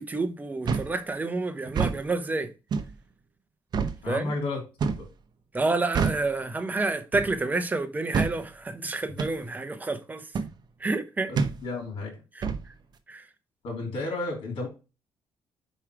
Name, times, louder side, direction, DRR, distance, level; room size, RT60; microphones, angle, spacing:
voice 1, 0.0-2.5 4.1-4.3 5.5-10.3 10.8-11.3 12.3-12.7 13.1-13.3, right 3 dB, 20° right, 0.9 m, -29 dB
sound 1, 0.7-1.0 1.7-2.0 2.7-2.9 3.7-4.0 4.8-5.1 5.9-6.3 7.1-7.4 8.1-8.4 9.2-9.4 10.3-10.5 11.4-11.6 12.4-12.7, right 5 dB, 50° right, 0.9 m, -27 dB
voice 2, 4.0-5.1 11.3-12.1 13.6-14.7, left 3 dB, 80° left, 3.1 m, -33 dB
5.5 x 4.9 x 4.6 m
cardioid pair, 110°, 9 cm